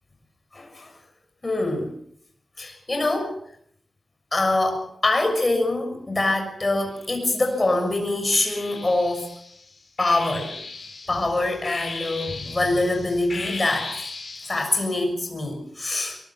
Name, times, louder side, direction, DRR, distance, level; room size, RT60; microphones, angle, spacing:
voice 1, 0.5-0.9 1.4-1.9 2.6-3.4 4.3-9.3 10.0-10.5 11.1-13.9 14.5-16.2, left 2 dB, 25° left, 4 dB, 6.4 m, -24 dB
sound 1, 6.9-7.7 8.3-15.0, left 3 dB, 50° left, 5.2 m, -37 dB
23.0 x 21.5 x 6.0 m, 0.66 s
wide cardioid pair, 165°, 0 cm